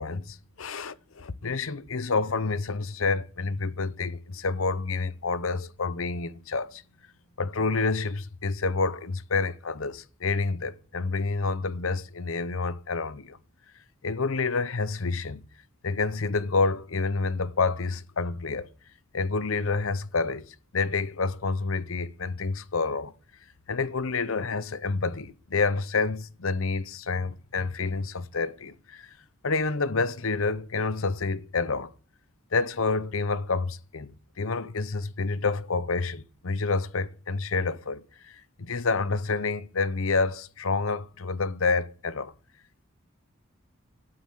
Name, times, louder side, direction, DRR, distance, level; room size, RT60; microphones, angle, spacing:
voice 1, 0.0-6.8 7.4-13.4 14.0-15.4 15.8-18.7 19.1-23.1 23.7-29.1 29.4-31.9 32.5-42.3, left 4 dB, 80° left, 0.9 m, -28 dB
11.0 x 8.8 x 7.9 m
head